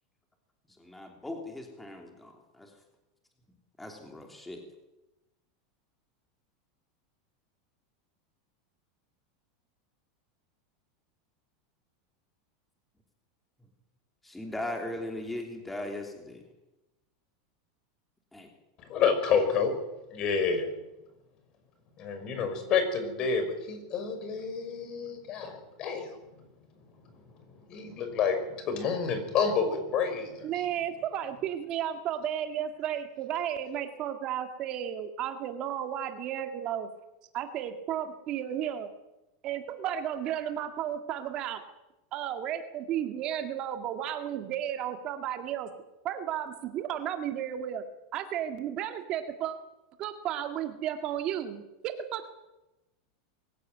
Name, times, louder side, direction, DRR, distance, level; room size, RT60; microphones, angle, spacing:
voice 1, 0.8-2.7 3.8-4.6 14.2-16.4 18.3-18.5, left 1 dB, 5° left, 2 dB, 3.1 m, -39 dB
voice 2, 18.9-19.7 20.1-20.7 22.0-26.1 27.7-28.4 28.7-30.5, left 6 dB, 35° left, 8 dB, 5.8 m, -29 dB
voice 3, 30.4-36.9 37.3-38.9 39.4-41.6 42.1-45.7 46.0-47.8 48.1-49.6 50.0-52.3, right 10 dB, 40° right, 7 dB, 2.0 m, -33 dB
23.0 x 15.5 x 9.3 m, 0.99 s
supercardioid pair, 145°, 2 cm